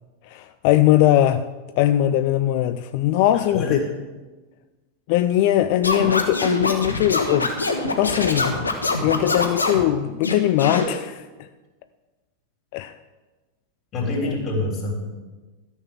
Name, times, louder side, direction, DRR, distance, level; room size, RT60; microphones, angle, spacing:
voice 1, 0.3-1.4 1.8-3.8 5.1-7.5 8.0-8.5 9.0-11.2 12.7-12.9 14.2-14.4, left 13 dB, 45° left, 11 dB, 0.4 m, -20 dB
voice 2, 3.5-3.9 13.9-15.0, left 2 dB, 30° left, -1 dB, 3.5 m, -25 dB
Scratching (performance technique), 5.8-9.8 10.2-10.9, left 3 dB, 75° left, 1.4 m, -24 dB
13.5 x 6.3 x 7.2 m, 1.2 s
figure-of-eight pair, 90°, 0 cm